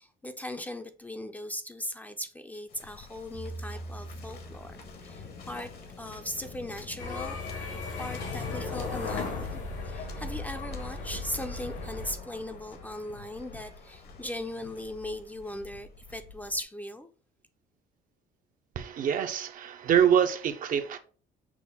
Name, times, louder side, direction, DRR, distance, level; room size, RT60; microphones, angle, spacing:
voice 1, 0.0-5.7 6.0-7.7 8.0-17.1, left 1 dB, 10° left, 0.4 m, -39 dB
Waves surf, 2.7-16.6, left 4 dB, 65° left, 1.0 m, -48 dB
sound 1, 3.3-5.6, right 2 dB, 70° right, 1.6 m, -43 dB
sound 2, 7.0-12.1, left 3 dB, 85° left, 1.5 m, -36 dB
voice 2, 18.8-21.0, right 9 dB, 55° right, 0.5 m, -25 dB
6.0 x 2.0 x 3.5 m
cardioid pair, 110°, 17 cm